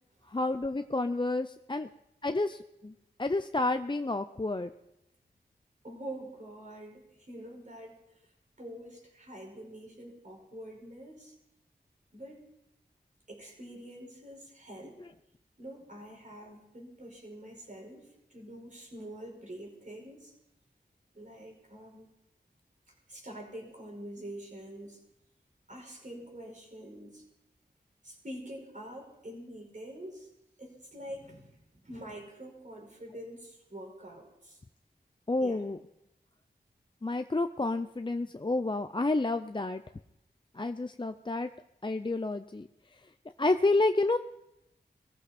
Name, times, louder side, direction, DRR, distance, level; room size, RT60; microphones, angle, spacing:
voice 1, 0.3-1.9 2.2-2.9 3.2-4.7 35.3-35.8 37.0-39.8 40.5-41.5 41.8-42.7 43.4-44.2, left 2 dB, 25° left, 9 dB, 0.6 m, -29 dB
voice 2, 5.8-8.3 8.6-11.3 12.1-12.4 13.3-15.0 15.6-20.3 21.1-22.1 22.9-25.0 25.7-27.2 28.0-30.3 30.6-34.6 35.4-35.6, right 1 dB, 45° right, 0 dB, 5.1 m, -46 dB
19.5 x 14.5 x 4.3 m, 0.86 s
cardioid pair, 45°, 17 cm